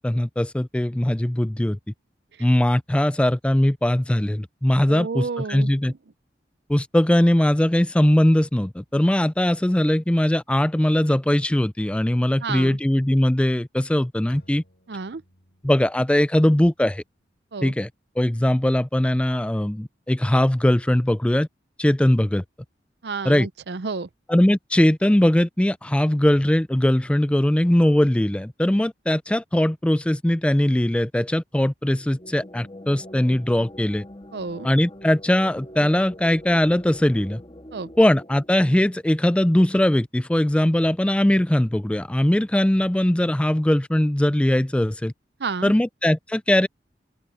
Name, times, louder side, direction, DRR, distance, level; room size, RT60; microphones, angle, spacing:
voice 1, 0.0-1.8 2.4-5.9 6.7-14.6 15.6-17.0 17.6-17.9 18.2-21.5 21.8-22.4 23.2-23.5 24.3-34.0 34.6-37.4 38.0-45.1 45.6-46.7, left 1 dB, 5° left, 0.3 m, -20 dB
voice 2, 4.9-5.9 12.4-12.8 14.9-15.2 17.5-17.7 23.0-24.1 34.3-34.7 37.7-37.9 45.4-45.7, right 4 dB, 70° right, 0.6 m, -31 dB
Bowed string instrument, 14.3-17.8, left 1 dB, 70° left, 6.4 m, -56 dB
sound 1, 31.9-39.4, left 1 dB, 30° left, 2.0 m, -44 dB
open air
head